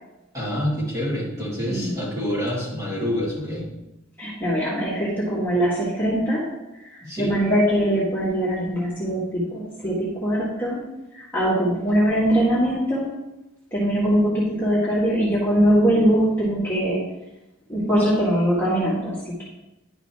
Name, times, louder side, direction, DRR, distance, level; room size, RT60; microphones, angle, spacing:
voice 1, 0.3-3.6 7.0-7.3, equal, 15° right, -7 dB, 2.6 m, -27 dB
voice 2, 4.2-6.4 6.9-10.8 11.1-13.1 13.7-17.0 17.7-19.4, equal, 10° left, -9 dB, 1.8 m, -22 dB
11.0 x 5.8 x 3.0 m, 0.96 s
head